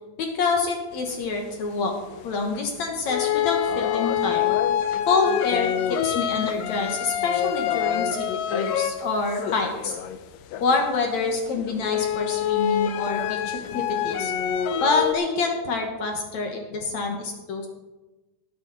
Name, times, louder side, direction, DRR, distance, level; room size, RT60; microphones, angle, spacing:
voice 1, 0.2-1.9 2.2-4.5 5.1-10.0 10.6-14.3 14.8-17.7, left 4 dB, 60° left, 2 dB, 2.5 m, -26 dB
sound 1, 1.3-1.4 1.9-2.6 3.1-9.0 9.3-10.9 11.3-15.1, left 10 dB, 85° left, 2.5 m, -26 dB
19.5 x 9.0 x 4.1 m, 1.1 s
omnidirectional pair, 3.9 m